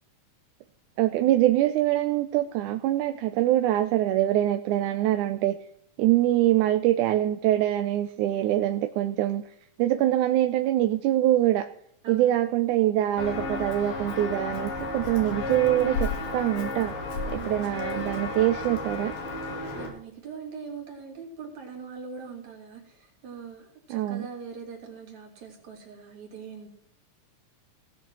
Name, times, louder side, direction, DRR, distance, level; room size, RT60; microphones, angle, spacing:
voice 1, 1.0-5.6 6.0-9.5 9.8-11.7 12.1-16.9 17.3-19.1 23.9-24.3, right 13 dB, 80° right, 8 dB, 2.1 m, -24 dB
voice 2, 12.0-12.4 17.3-17.7 19.7-26.7, right 5 dB, 65° right, -1 dB, 4.2 m, -42 dB
Walk footsteps, 13.2-19.9, left 3 dB, 85° left, 4.0 m, -32 dB
18.5 x 6.7 x 6.1 m, 0.67 s
omnidirectional pair, 3.6 m